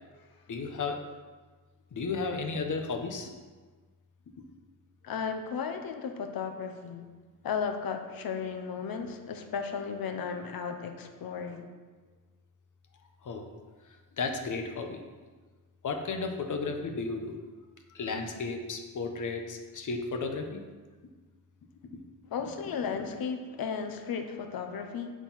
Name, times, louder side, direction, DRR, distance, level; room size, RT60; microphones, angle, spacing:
voice 1, 0.5-1.0 1.9-3.3 13.2-13.4 14.2-15.0 15.8-17.4 17.9-20.6 22.9-23.0, left 4 dB, 55° left, 4 dB, 1.3 m, -33 dB
voice 2, 5.0-7.0 7.4-11.7 22.3-25.1, left 6 dB, 75° left, 6 dB, 1.1 m, -35 dB
8.0 x 7.3 x 5.8 m, 1.4 s
wide cardioid pair, 125°, 36 cm